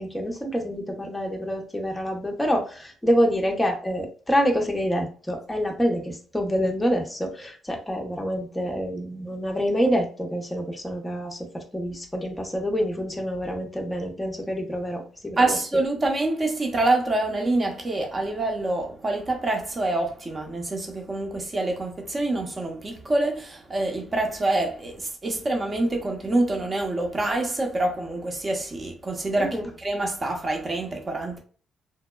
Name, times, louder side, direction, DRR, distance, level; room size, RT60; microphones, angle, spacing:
voice 1, 0.0-15.6 29.4-29.7, equal, 10° left, 0.6 m, -27 dB
voice 2, 15.4-31.4, right 2 dB, 30° right, 0.8 m, -26 dB
2.9 x 2.1 x 2.2 m
cardioid pair, 90°, 0 cm